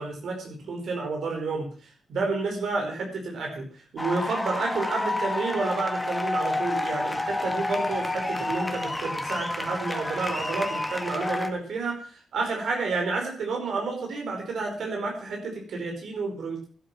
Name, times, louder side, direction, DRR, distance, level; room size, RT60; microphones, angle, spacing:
voice 1, 0.0-1.7 2.1-16.6, right 3 dB, 75° right, 1 dB, 4.9 m, -30 dB
sound 1, 4.0-11.5, left 2 dB, 10° left, 2.1 m, -29 dB
12.0 x 12.0 x 6.2 m, 0.41 s
cardioid pair, 105°, 0 cm